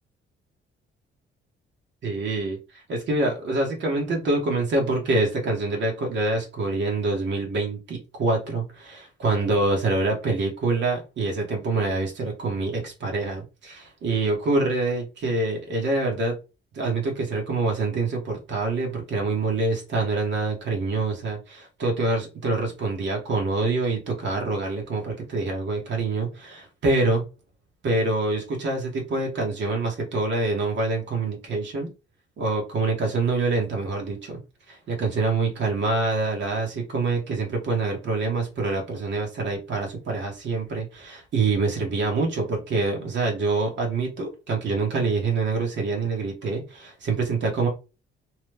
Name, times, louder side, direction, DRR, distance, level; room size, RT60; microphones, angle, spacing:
voice 1, 2.0-2.6 2.9-16.3 16.7-27.2 27.8-31.9 32.4-34.4 34.7-47.7, right 3 dB, 65° right, 1.3 m, -26 dB
3.0 x 2.3 x 3.3 m
cardioid pair, 90°, 20 cm